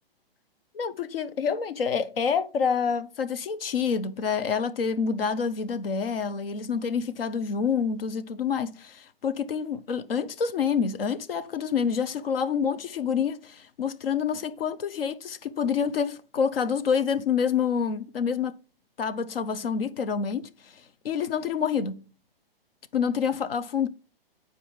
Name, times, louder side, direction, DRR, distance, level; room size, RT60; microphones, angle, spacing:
voice 1, 0.7-18.5 19.0-20.5 21.0-22.0 22.9-23.9, left 6 dB, 70° left, 0.8 m, -27 dB
8.3 x 4.6 x 4.8 m
hypercardioid pair, 130°, 30 cm